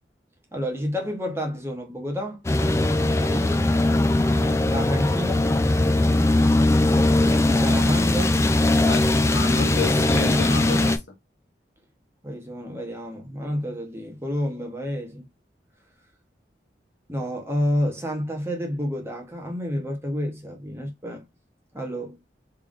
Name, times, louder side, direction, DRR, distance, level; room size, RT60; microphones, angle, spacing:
voice 1, 0.5-2.4 3.2-3.7 4.6-5.5 7.4-8.5 12.2-15.3 17.1-21.2 21.7-22.2, equal, 15° right, 0.9 m, -29 dB
sound 1, 2.4-11.0, left 2 dB, 15° left, 0.3 m, -20 dB
voice 2, 8.9-11.1, left 4 dB, 85° left, 1.0 m, -31 dB
3.5 x 3.4 x 2.4 m
head